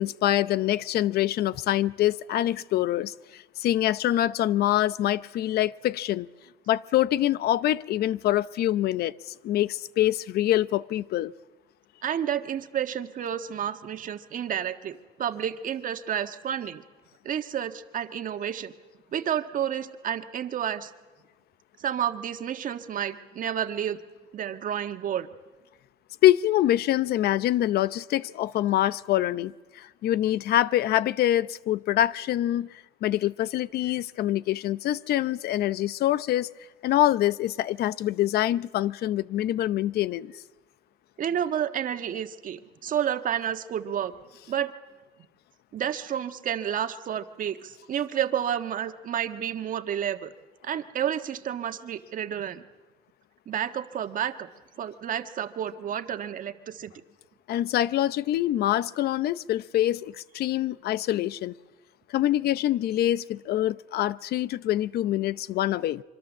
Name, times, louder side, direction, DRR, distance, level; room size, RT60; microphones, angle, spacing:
voice 1, 0.0-6.3 6.7-11.3 26.2-32.7 33.0-36.5 36.8-40.3 57.5-61.5 62.1-66.0, left 13 dB, 70° left, 0.7 m, -25 dB
voice 2, 12.0-16.8 17.2-18.7 19.1-20.9 21.8-24.0 24.3-25.3 41.2-44.1 44.5-44.7 45.7-50.3 50.6-52.6 53.5-54.5 54.8-56.9, right 9 dB, 55° right, 1.5 m, -30 dB
25.5 x 24.5 x 7.4 m
cardioid pair, 110°, 17 cm